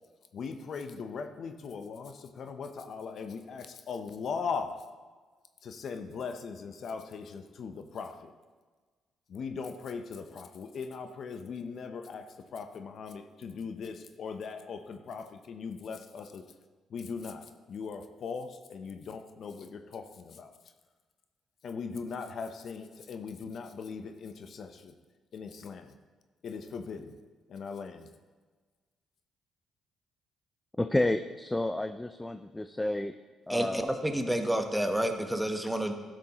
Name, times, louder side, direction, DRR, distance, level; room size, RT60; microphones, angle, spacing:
voice 1, 0.3-4.8 5.6-8.3 9.3-16.4 16.9-20.5 21.6-24.9 25.3-25.9 26.4-27.2 27.5-28.1, left 5 dB, 60° left, 7 dB, 0.6 m, -39 dB
voice 2, 30.8-33.1 33.5-33.8, left 1 dB, 15° left, 8 dB, 0.3 m, -30 dB
voice 3, 33.5-35.9, right 1 dB, 5° right, 5 dB, 0.9 m, -29 dB
12.5 x 6.1 x 2.9 m, 1.4 s
cardioid pair, 75°, 0 cm